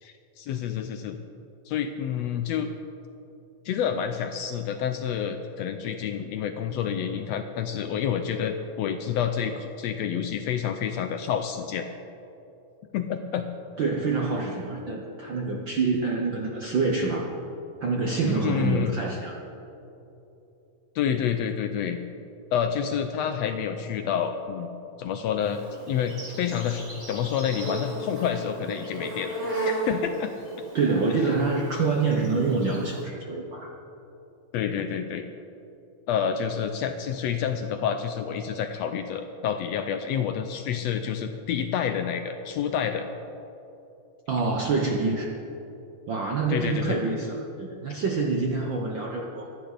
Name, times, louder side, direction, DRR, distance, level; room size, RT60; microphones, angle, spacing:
voice 1, 0.0-1.2 1.6-2.7 3.6-11.9 12.9-13.5 18.3-18.9 20.9-22.0 22.5-24.7 25.0-25.6 25.9-29.3 29.6-30.5 34.5-35.2 36.1-43.1 46.5-47.0, left 8 dB, 75° left, 7 dB, 1.6 m, -28 dB
voice 2, 13.8-17.3 17.8-19.4 30.7-33.7 44.3-45.3 46.1-49.5, right 4 dB, 65° right, 0 dB, 1.1 m, -26 dB
Insect, 25.4-33.0, right 2 dB, 20° right, 4.4 m, -35 dB
24.5 x 10.0 x 4.0 m, 2.9 s
omnidirectional pair, 3.4 m